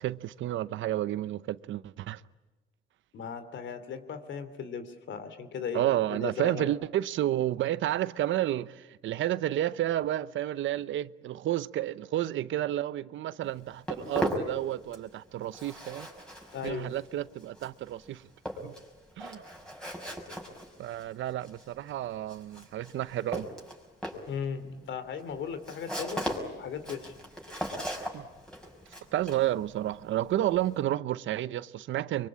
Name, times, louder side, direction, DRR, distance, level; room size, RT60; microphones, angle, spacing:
voice 1, 0.0-2.2 5.7-16.1 16.6-18.2 18.6-18.7 19.2-19.4 20.8-23.5 28.1-28.3 29.1-32.3, right 13 dB, 75° right, 0.8 m, -31 dB
voice 2, 3.1-6.7 16.5-16.9 24.3-26.3 26.5-27.1, left 6 dB, 70° left, 2.9 m, -37 dB
Walk footsteps, 13.4-15.2 15.4-30.8, equal, 5° left, 5.9 m, -38 dB
24.0 x 24.0 x 8.6 m
cardioid pair, 90°, 20 cm